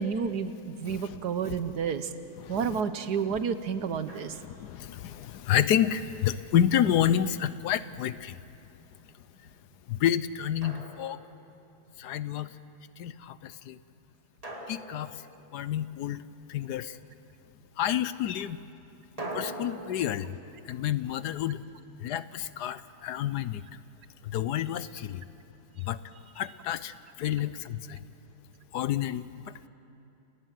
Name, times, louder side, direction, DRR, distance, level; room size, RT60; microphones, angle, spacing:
voice 1, 0.0-2.1 2.5-4.4, right 6 dB, 60° right, 11 dB, 1.4 m, -30 dB
voice 2, 0.8-1.2 1.5-1.6 2.4-2.8 3.3-3.4 4.4-8.4 9.4-9.5 9.9-11.2 12.0-12.5 13.0-13.8 14.7-15.2 15.5-17.0 17.8-18.6 19.3-20.4 20.6-21.6 22.0-23.6 24.2-25.2 25.8-26.0 26.3-28.0 28.7-29.7, left 10 dB, 65° left, 15 dB, 1.1 m, -29 dB
Drum, 4.1-4.8 6.8-7.8 10.6-11.8 14.4-16.1 19.2-22.2, right 1 dB, 20° right, 2.5 m, -44 dB
29.5 x 19.0 x 7.6 m, 2.8 s
omnidirectional pair, 2.1 m